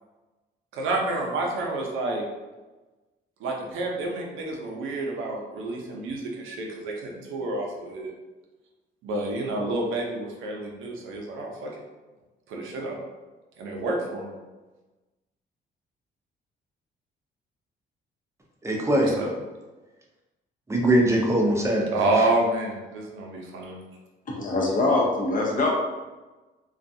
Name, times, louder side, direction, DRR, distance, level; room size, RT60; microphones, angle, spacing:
voice 1, 0.7-2.2 3.4-8.1 9.0-11.7 12.5-13.0 13.6-14.3 19.0-19.3 21.9-23.8, right 2 dB, 85° right, -1 dB, 0.6 m, -29 dB
voice 2, 18.6-19.1 20.7-22.3, right 1 dB, 15° right, -1 dB, 0.6 m, -22 dB
voice 3, 24.3-25.7, left 2 dB, 45° left, -2 dB, 0.7 m, -23 dB
2.4 x 2.3 x 2.6 m, 1.2 s
cardioid pair, 90°, 20 cm